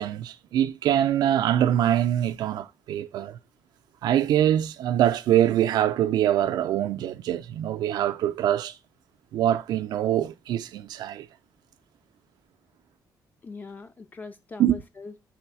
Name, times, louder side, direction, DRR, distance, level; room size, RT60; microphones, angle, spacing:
voice 1, 0.0-3.4 4.0-8.8 9.3-11.3 14.6-14.8, right 11 dB, 85° right, 0.4 m, -24 dB
voice 2, 13.4-15.3, left 3 dB, 25° left, 0.3 m, -41 dB
3.4 x 3.1 x 4.7 m
cardioid pair, 135°, 7 cm